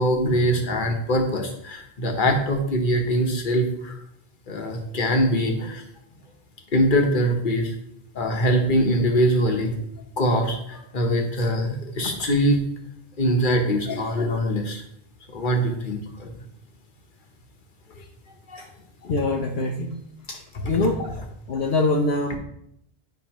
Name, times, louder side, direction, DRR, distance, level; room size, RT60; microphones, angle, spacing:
voice 1, 0.0-4.0 4.5-5.8 6.7-7.7 8.1-9.8 10.2-12.6 13.2-14.8 15.3-16.3 18.5-18.7, equal, 50° left, 3 dB, 1.3 m, -23 dB
voice 2, 19.0-20.0 20.3-21.2 21.5-22.4, left 2 dB, 70° left, 0 dB, 1.0 m, -24 dB
10.0 x 5.8 x 3.0 m, 0.72 s
omnidirectional pair, 1.1 m